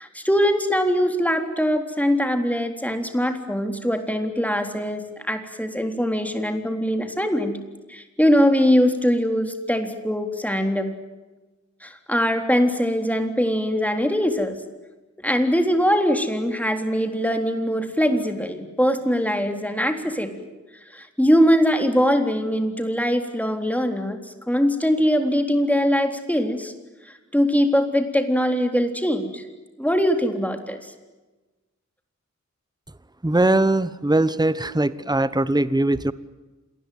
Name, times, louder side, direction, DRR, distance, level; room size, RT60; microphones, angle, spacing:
voice 1, 0.0-7.6 7.9-10.9 11.8-14.6 15.2-20.5 20.9-24.2 24.5-26.7 27.1-29.4 29.8-30.9, equal, 5° left, 6 dB, 3.7 m, -22 dB
voice 2, 33.2-36.1, right 2 dB, 15° right, 16 dB, 1.1 m, -20 dB
27.5 x 20.5 x 9.5 m, 1.2 s
wide cardioid pair, 65°, 29 cm